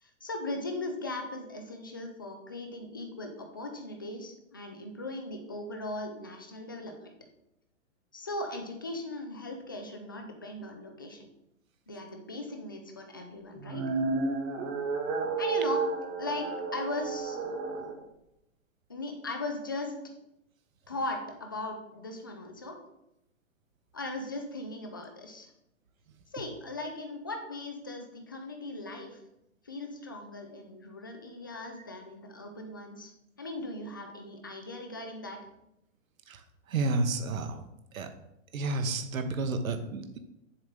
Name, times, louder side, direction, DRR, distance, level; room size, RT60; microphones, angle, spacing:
voice 1, 0.0-7.1 8.1-11.3 11.9-13.9 15.4-15.9 16.2-17.4 18.9-20.0 20.9-22.8 23.9-25.5 26.3-29.2 29.6-33.1 33.4-35.5, left 2 dB, 20° left, 3 dB, 0.3 m, -38 dB
sound 1, 13.6-17.9, right 4 dB, 20° right, 0.9 m, -31 dB
voice 2, 36.3-37.6 37.9-38.1 38.5-40.2, right 3 dB, 85° right, 7 dB, 1.2 m, -31 dB
7.4 x 7.1 x 3.7 m, 0.85 s
hypercardioid pair, 160°, 40 cm